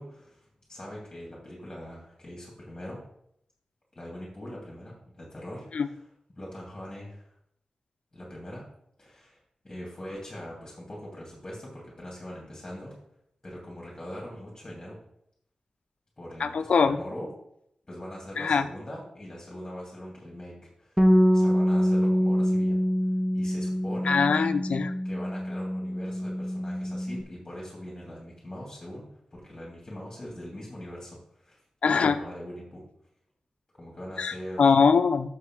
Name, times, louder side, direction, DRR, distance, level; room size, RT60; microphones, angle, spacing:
voice 1, 0.0-3.0 3.9-5.9 6.4-7.3 8.1-8.6 9.0-9.4 9.6-12.9 13.4-15.0 16.2-17.3 17.9-22.8 23.3-24.2 25.0-31.6 31.9-32.8 33.8-34.6, equal, 20° left, -5 dB, 2.7 m, -42 dB
voice 2, 16.4-17.0 18.4-18.7 24.0-24.9 31.8-32.2 34.2-35.3, left 5 dB, 75° left, 11 dB, 0.6 m, -22 dB
Bass guitar, 21.0-27.2, equal, 5° right, 0.8 m, -25 dB
6.6 x 5.4 x 6.1 m, 0.73 s
wide cardioid pair, 135°, 2 cm